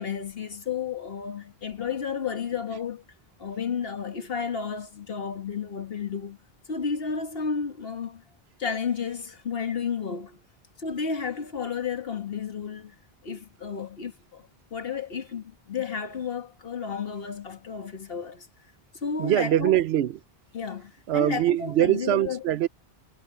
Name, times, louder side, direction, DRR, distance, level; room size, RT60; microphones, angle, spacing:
voice 1, 0.0-3.0 3.4-6.4 6.7-8.2 8.6-10.4 10.8-13.0 13.2-18.5 19.0-19.8 20.5-22.4, left 6 dB, 65° left, 1.8 m, -32 dB
voice 2, 19.0-20.2 21.1-22.7, right 12 dB, 85° right, 0.9 m, -23 dB
omnidirectional pair, 1.0 m